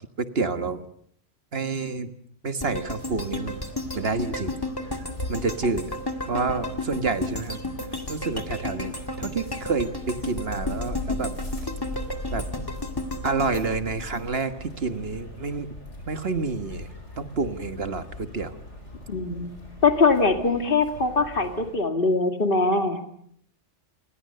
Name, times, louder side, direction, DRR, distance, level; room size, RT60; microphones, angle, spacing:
voice 1, 0.2-0.8 1.5-2.1 2.4-3.6 4.0-4.6 5.3-6.0 6.3-7.6 8.1-11.3 12.3-12.4 13.2-15.7 16.1-16.9 17.2-18.6, right 4 dB, 55° right, 10 dB, 1.7 m, -28 dB
sound 1, 2.6-14.8 15.2-15.3, left 1 dB, 20° left, 2.1 m, -33 dB
sound 2, 3.0-21.8, left 2 dB, 70° left, 5.8 m, -39 dB
voice 2, 19.1-19.5 19.8-23.0, left 3 dB, 45° left, 6 dB, 2.4 m, -22 dB
28.5 x 22.0 x 6.7 m, 0.66 s
omnidirectional pair, 1.2 m